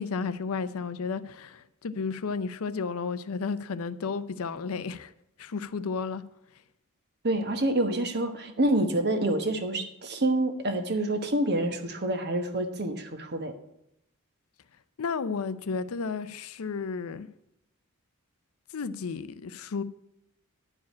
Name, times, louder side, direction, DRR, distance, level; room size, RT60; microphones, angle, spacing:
voice 1, 0.0-5.1 5.4-6.2 15.0-17.3 18.7-19.8, left 5 dB, 65° left, 0.5 m, -32 dB
voice 2, 7.2-13.5, right 1 dB, 50° right, 1.2 m, -27 dB
10.5 x 4.9 x 8.3 m
head